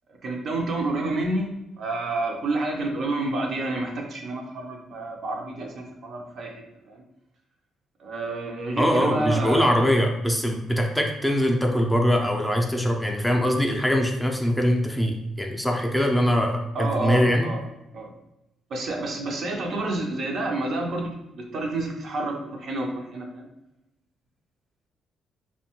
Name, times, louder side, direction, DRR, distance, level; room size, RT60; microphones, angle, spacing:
voice 1, 0.2-1.5 1.8-7.0 8.0-9.9 16.7-17.6 17.9-18.1 18.7-23.5, right 2 dB, 60° right, 2 dB, 0.5 m, -29 dB
voice 2, 8.8-17.5, equal, 5° left, 1 dB, 0.4 m, -22 dB
2.6 x 2.2 x 2.9 m, 0.90 s
cardioid pair, 90°, 0 cm